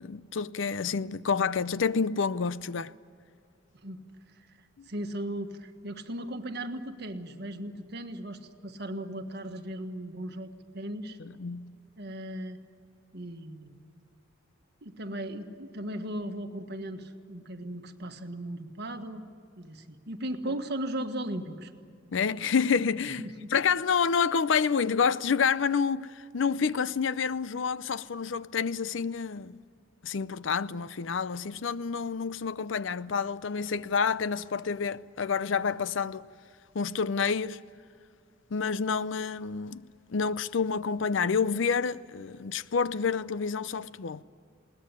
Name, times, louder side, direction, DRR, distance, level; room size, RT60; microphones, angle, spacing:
voice 1, 0.0-2.9 11.2-11.8 20.5-20.6 22.1-29.6 30.0-36.3 36.7-37.6 38.5-39.8 40.1-44.2, left 6 dB, 65° left, 0.5 m, -28 dB
voice 2, 4.9-11.2 12.0-12.6 13.1-13.8 14.8-19.2 19.6-21.7 23.2-23.5, right 1 dB, 55° right, 1.6 m, -37 dB
21.0 x 19.0 x 9.8 m
head